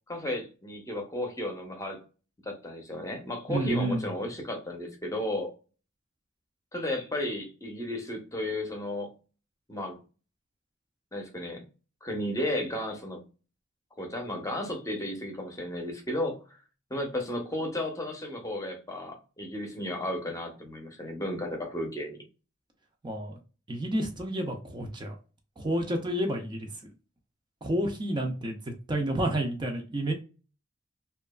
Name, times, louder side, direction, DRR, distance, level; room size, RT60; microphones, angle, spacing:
voice 1, 0.1-2.0 2.4-5.5 6.7-9.1 9.7-10.0 11.1-11.6 12.0-13.2 14.0-16.6 16.9-22.2, left 1 dB, 15° left, 3 dB, 0.7 m, -34 dB
voice 2, 3.5-4.1 23.0-23.4 23.7-25.2 25.6-26.7 27.6-30.1, right 1 dB, 20° right, 3 dB, 0.4 m, -30 dB
2.8 x 2.4 x 2.2 m, 0.33 s
head